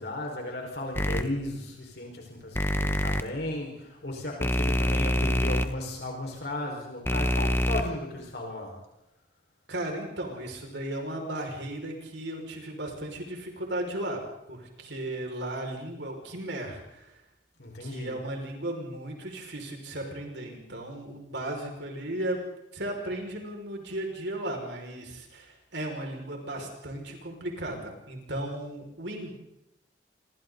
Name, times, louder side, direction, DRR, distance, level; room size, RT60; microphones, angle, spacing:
voice 1, 0.0-8.8 17.6-18.2, left 1 dB, 55° left, 0 dB, 5.3 m, -35 dB
sound 1, 0.9-1.2 2.5-3.2 4.4-5.6 7.0-7.8, equal, 10° left, 1.0 m, -25 dB
voice 2, 9.7-14.2 14.5-17.2 17.8-22.5 22.7-29.3, right 1 dB, 70° right, 1 dB, 5.9 m, -35 dB
28.5 x 25.5 x 4.1 m, 0.87 s
head